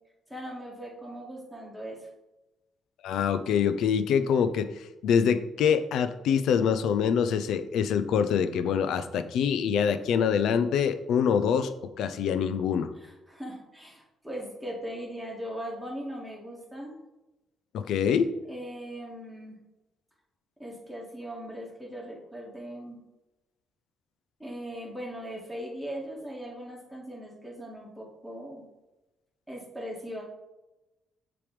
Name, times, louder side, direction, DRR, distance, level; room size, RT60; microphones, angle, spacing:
voice 1, 0.3-2.1 13.0-16.9 18.5-19.6 20.6-23.0 24.4-28.6 29.5-30.2, equal, 5° left, -3 dB, 2.2 m, -39 dB
voice 2, 3.0-4.7 5.0-11.7 12.0-12.9 17.7-18.3, left 7 dB, 80° left, 11 dB, 0.5 m, -25 dB
6.8 x 3.4 x 5.0 m, 1.0 s
cardioid pair, 90°, 0 cm